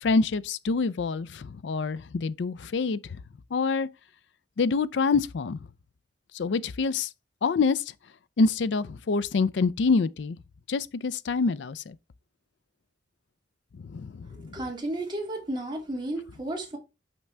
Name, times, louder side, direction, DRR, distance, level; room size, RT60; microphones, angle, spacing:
voice 1, 0.0-3.0 3.5-3.9 4.6-5.6 6.3-7.1 7.4-7.8 8.4-10.4 10.7-12.0 13.8-14.5, left 4 dB, 75° left, 0.4 m, -26 dB
voice 2, 14.3-16.8, right 1 dB, 25° right, 2.2 m, -33 dB
5.9 x 5.5 x 3.3 m
head